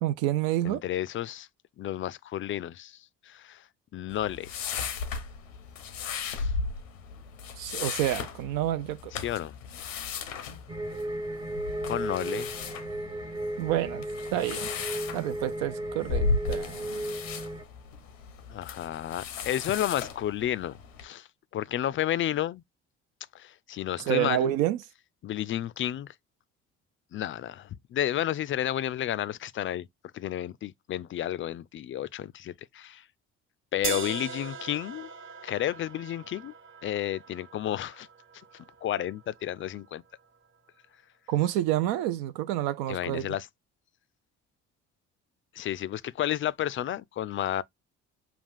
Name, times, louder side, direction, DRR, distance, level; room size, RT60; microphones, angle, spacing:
voice 1, 0.0-0.8 7.6-9.1 13.6-14.0 14.3-14.7 15.1-17.1 24.1-24.8 41.3-43.3, right 13 dB, 70° right, 0.5 m, -28 dB
voice 2, 0.6-1.5 1.8-3.7 3.9-4.5 6.3-6.5 9.1-9.5 11.9-12.5 18.5-21.3 21.5-22.6 23.3-24.5 25.2-26.1 27.1-29.9 30.1-33.0 33.7-35.1 35.4-36.5 36.8-38.1 38.5-40.0 42.9-43.5 45.5-47.6, left 12 dB, 35° left, 0.4 m, -31 dB
sound 1, 4.1-21.0, left 4 dB, 90° left, 0.7 m, -36 dB
sound 2, 10.7-17.6, right 1 dB, 10° right, 0.7 m, -35 dB
sound 3, 33.8-39.8, right 5 dB, 35° right, 0.9 m, -40 dB
5.7 x 2.3 x 3.5 m
hypercardioid pair, 50°, 37 cm